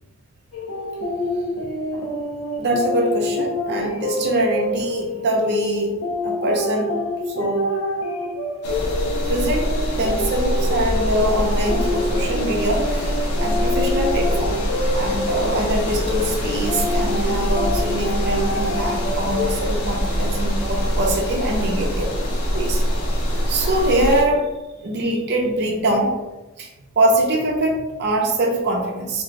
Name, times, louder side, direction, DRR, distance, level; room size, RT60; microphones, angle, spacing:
sound 1, 0.5-19.5, left 1 dB, 65° left, 0.7 m, -27 dB
voice 1, 2.6-5.9 6.2-6.9 7.3-7.7 9.3-9.7 10.0-14.6 14.9-22.1 22.5-22.8 23.5-24.5 24.8-26.2 26.6-26.7 27.0-29.2, right 1 dB, 50° right, 0 dB, 0.6 m, -23 dB
sound 2, 8.6-24.2, equal, 90° left, 0.9 m, -24 dB
3.7 x 2.2 x 3.8 m, 1.0 s
head